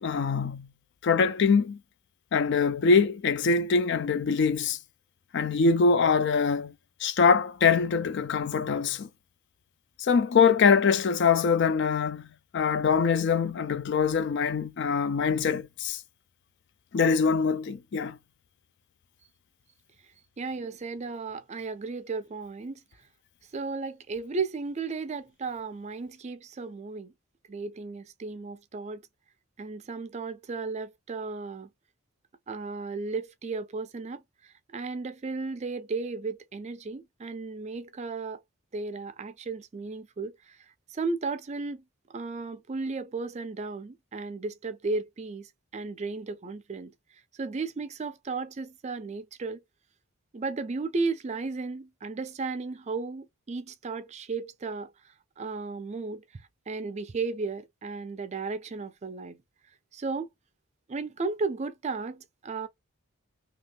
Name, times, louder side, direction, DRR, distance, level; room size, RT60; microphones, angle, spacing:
voice 1, 0.0-0.7 1.0-1.8 2.3-4.8 5.3-6.7 7.0-9.1 10.0-12.3 12.5-16.0 16.9-18.2, left 5 dB, 55° left, 0.4 m, -23 dB
voice 2, 20.4-22.8 23.5-27.1 27.5-29.0 29.6-31.7 32.5-34.2 34.7-38.4 38.7-40.6 40.9-41.8 42.1-45.5 45.7-46.9 47.4-49.6 50.3-54.9 55.4-56.2 56.7-59.4 59.9-60.3 60.9-62.7, right 4 dB, 30° right, 0.4 m, -34 dB
2.8 x 2.6 x 3.2 m
head